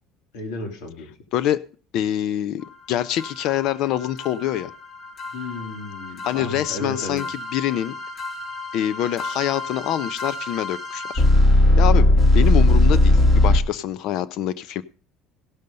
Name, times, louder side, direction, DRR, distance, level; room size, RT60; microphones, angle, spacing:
voice 1, 0.3-1.1 5.3-7.2, left 2 dB, 90° left, 3 dB, 3.2 m, -33 dB
voice 2, 1.3-1.6 1.9-4.7 6.2-8.0 8.7-11.2 11.8-12.1 12.3-14.8, left 11 dB, 60° left, 17 dB, 0.5 m, -25 dB
sound 1, 3.2-13.6, left 1 dB, 35° left, 2.7 m, -20 dB
16.5 x 6.6 x 5.3 m, 0.40 s
cardioid pair, 140°, 0 cm